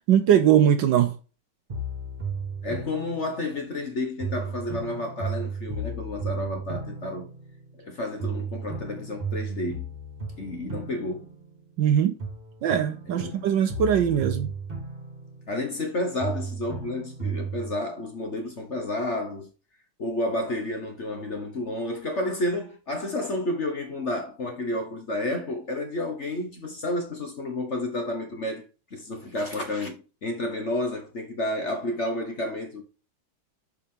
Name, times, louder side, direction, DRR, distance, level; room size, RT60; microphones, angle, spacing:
voice 1, 0.1-1.2 11.8-12.2 12.6-14.5, right 9 dB, 70° right, 1.2 m, -21 dB
sound 1, 1.7-3.8 4.2-7.9 8.2-11.9 12.2-15.9 16.2-17.8, right 3 dB, 25° right, 1.9 m, -35 dB
voice 2, 2.6-7.3 7.8-9.9 10.4-11.4 13.1-13.4 15.5-19.5 20.0-28.6 28.9-32.8, left 1 dB, 40° left, 1.2 m, -31 dB
6.7 x 5.6 x 3.7 m
omnidirectional pair, 2.3 m